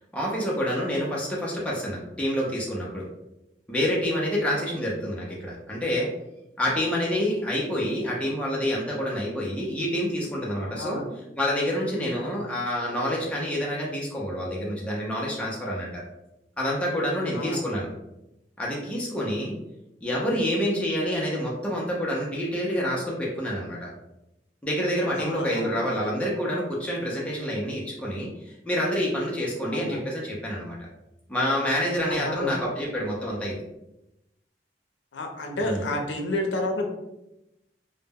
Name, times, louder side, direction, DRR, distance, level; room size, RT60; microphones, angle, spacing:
voice 1, 0.1-3.1 3.7-6.1 6.6-11.0 11.4-16.0 16.6-17.9 18.6-19.6 20.0-23.9 24.6-30.8 31.3-33.5 35.6-35.8, equal, 5° left, -5 dB, 0.4 m, -27 dB
voice 2, 10.7-11.1 17.3-17.7 25.1-25.9 29.6-30.1 32.1-32.7 35.1-36.9, left 1 dB, 75° left, 3 dB, 0.5 m, -30 dB
2.1 x 2.0 x 3.3 m, 0.90 s
head